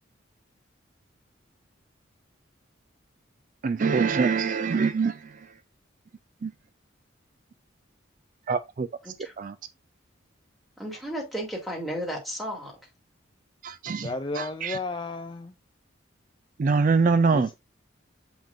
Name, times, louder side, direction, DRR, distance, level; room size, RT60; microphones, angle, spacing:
voice 1, 3.6-5.3 6.4-6.5 8.5-8.9 9.4-9.5 13.6-14.1 14.4-14.8 16.6-17.5, right 4 dB, 40° right, 0.3 m, -24 dB
voice 2, 10.8-12.7, equal, ahead, 2.3 m, -33 dB
voice 3, 14.0-15.5 17.3-17.5, left 3 dB, 25° left, 0.4 m, -33 dB
7.6 x 5.0 x 2.6 m
head